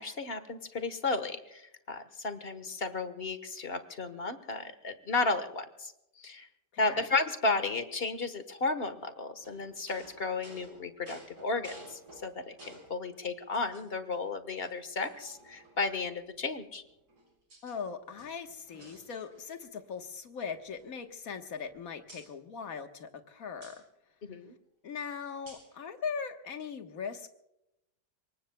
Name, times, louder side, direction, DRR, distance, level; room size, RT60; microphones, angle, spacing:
voice 1, 0.0-6.5 6.8-16.8 24.2-24.5, left 3 dB, 40° left, 10 dB, 1.4 m, -34 dB
voice 2, 6.7-7.1 17.6-23.8 24.8-27.3, left 6 dB, 55° left, 6 dB, 1.7 m, -40 dB
sound 1, 9.4-13.0 13.5-14.2 14.6-14.7 15.0-16.1 16.8-17.8 18.1-19.6 19.9-20.1 20.4-21.7 22.1-22.3 23.6-23.8 25.5-25.8, right 1 dB, 70° right, 5.6 m, -54 dB
26.0 x 23.0 x 2.3 m, 0.86 s
omnidirectional pair, 1.8 m